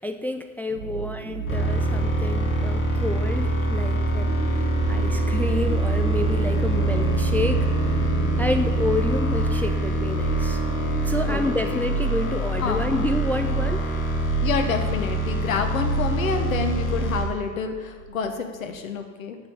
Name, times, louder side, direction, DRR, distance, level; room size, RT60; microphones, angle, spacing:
voice 1, 0.0-8.1 8.4-10.6 11.0-13.8, left 2 dB, 5° left, 7 dB, 0.3 m, -29 dB
sound 1, 0.7-18.3 18.5-18.6, right 6 dB, 90° right, 0.9 m, -31 dB
sound 2, 1.5-17.2, equal, 30° left, 2.6 m, -25 dB
sound 3, 4.3-11.8, right 5 dB, 45° right, 1.7 m, -36 dB
voice 2, 11.3-11.8 12.6-13.1 14.3-19.4, left 5 dB, 75° left, 6 dB, 1.3 m, -28 dB
8.5 x 7.4 x 7.7 m, 1.4 s
figure-of-eight pair, 70°, 41 cm